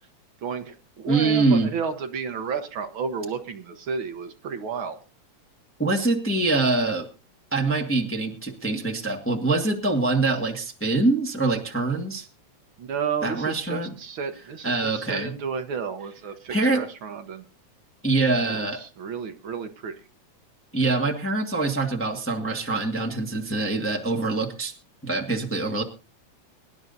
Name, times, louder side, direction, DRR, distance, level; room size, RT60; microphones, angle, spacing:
voice 1, 0.4-5.0 12.8-17.4 18.3-20.0, right 6 dB, 60° right, 7 dB, 1.4 m, -32 dB
voice 2, 1.1-1.7 5.8-7.0 7.5-12.3 13.2-13.9 14.6-15.3 16.5-16.8 18.0-18.8 20.7-24.7 25.0-25.8, right 3 dB, 20° left, 2 dB, 0.3 m, -24 dB
24.5 x 11.0 x 2.7 m, 0.33 s
omnidirectional pair, 3.5 m